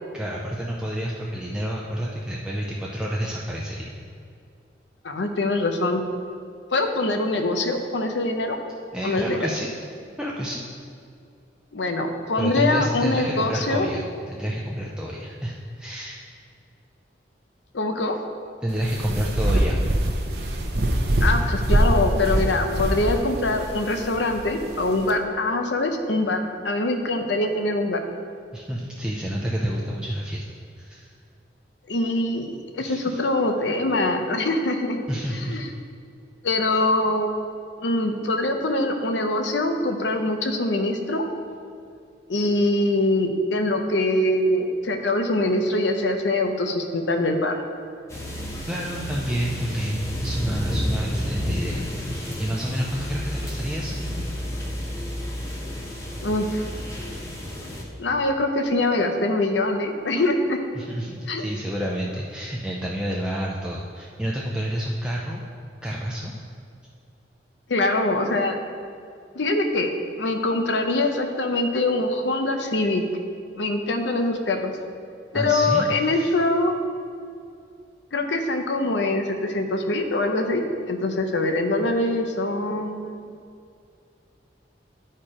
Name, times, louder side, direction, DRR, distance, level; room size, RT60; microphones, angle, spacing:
voice 1, 0.1-3.9 8.9-9.7 10.2-10.6 12.4-14.0 14.3-16.2 18.6-19.9 28.5-30.5 30.8-31.1 32.8-33.2 35.1-35.6 48.7-54.1 60.7-65.4 65.8-66.3 75.3-76.3, equal, 5° right, -4 dB, 0.5 m, -29 dB
voice 2, 5.0-6.0 6.7-8.6 9.0-9.5 11.7-13.9 17.7-18.2 21.2-28.0 31.9-35.0 35.5-35.7 36.4-37.3 37.8-41.3 42.3-47.6 56.2-56.6 58.0-60.6 61.3-61.5 67.7-68.6 69.3-69.9 70.2-73.0 73.6-74.7 75.3-76.8 78.1-83.1, left 2 dB, 80° left, 5 dB, 0.7 m, -23 dB
sound 1, 18.7-25.1, right 1 dB, 60° right, 0.9 m, -24 dB
sound 2, 48.1-57.8, equal, 15° left, 0.9 m, -31 dB
10.0 x 4.4 x 4.9 m, 2.4 s
head